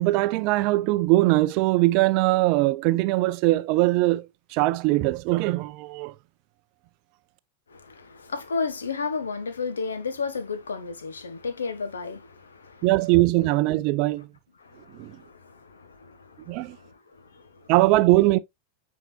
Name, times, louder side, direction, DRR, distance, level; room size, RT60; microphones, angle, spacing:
voice 1, 0.0-4.2 4.5-6.1 12.8-14.3 15.0-15.2 16.5-16.8 17.7-18.4, right 19 dB, 45° right, 0.4 m, -21 dB
voice 2, 7.7-12.9 14.6-17.7, left 4 dB, 70° left, 1.3 m, -33 dB
8.9 x 4.7 x 2.4 m
figure-of-eight pair, 90°, 0 cm